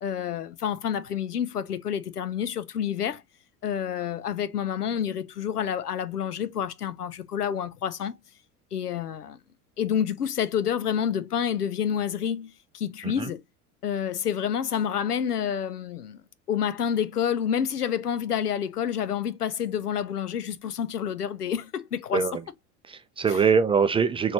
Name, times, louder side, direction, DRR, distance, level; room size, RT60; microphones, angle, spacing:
voice 1, 0.0-3.2 3.6-8.2 8.7-9.4 9.8-13.4 13.8-16.2 16.5-22.2 23.3-23.4, left 8 dB, 85° left, 0.6 m, -28 dB
voice 2, 22.9-24.3, right 6 dB, 15° right, 0.4 m, -23 dB
6.1 x 3.2 x 2.7 m
figure-of-eight pair, 75°, 45 cm